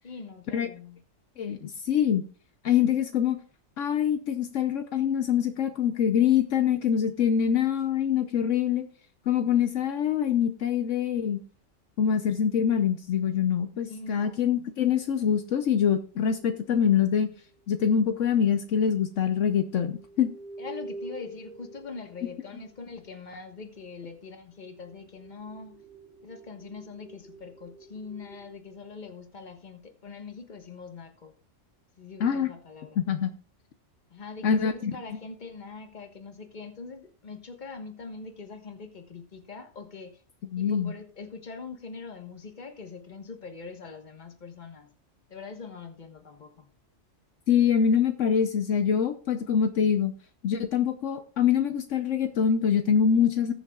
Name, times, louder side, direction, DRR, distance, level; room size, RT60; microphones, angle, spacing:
voice 1, 0.0-1.0 13.8-14.6 20.6-25.8 26.2-31.3 32.0-33.0 34.1-40.2 40.6-44.9 45.3-46.7, left 4 dB, 35° left, 6 dB, 1.4 m, -43 dB
voice 2, 1.4-2.3 2.6-3.4 3.8-8.9 9.3-11.4 12.0-17.3 17.7-20.3 32.2-32.5 33.0-33.3 34.4-34.9 40.5-40.9 47.5-50.1 50.4-53.5, left 8 dB, 75° left, 8 dB, 1.1 m, -24 dB
sound 1, 14.9-16.6 18.2-18.3 19.6-23.2 24.1-28.5, right 1 dB, 55° right, 2.2 m, -47 dB
20.0 x 7.0 x 2.4 m, 0.41 s
omnidirectional pair, 1.3 m